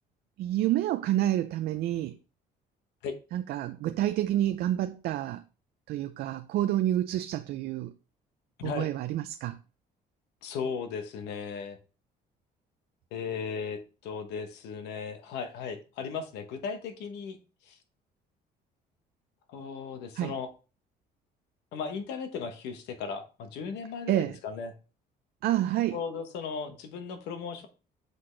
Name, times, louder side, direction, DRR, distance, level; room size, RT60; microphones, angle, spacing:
voice 1, 0.4-2.2 3.3-5.4 5.9-7.9 8.6-9.6 20.2-20.3 24.1-24.4 25.4-26.0, right 13 dB, 65° right, 0.4 m, -28 dB
voice 2, 8.6-8.9 10.4-11.8 13.1-17.4 17.7-17.8 19.5-20.5 21.7-24.7 25.9-27.7, left 6 dB, 90° left, 1.0 m, -36 dB
7.7 x 4.1 x 3.2 m
cardioid pair, 110°, 17 cm